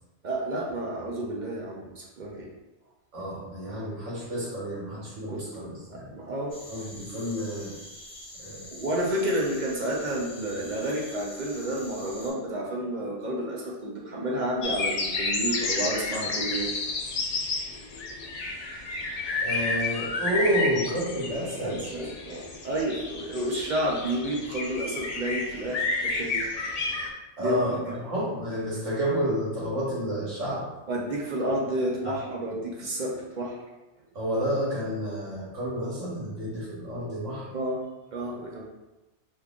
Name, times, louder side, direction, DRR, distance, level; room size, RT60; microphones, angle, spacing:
voice 1, 0.2-2.5 5.3-5.4 5.9-6.6 8.7-16.7 21.6-26.4 27.4-27.7 30.9-33.6 37.5-37.8 38.1-38.6, right 1 dB, 50° right, -3 dB, 0.6 m, -30 dB
voice 2, 3.1-6.1 6.7-7.7 8.4-8.7 19.4-21.8 27.4-30.6 32.0-32.1 34.1-37.5, equal, 85° right, -7 dB, 1.6 m, -30 dB
sound 1, 6.5-12.3, left 1 dB, 55° left, 1.2 m, -45 dB
sound 2, 14.6-27.1, left 3 dB, 80° left, 0.3 m, -31 dB
3.5 x 3.1 x 2.4 m, 1.0 s
omnidirectional pair, 1.2 m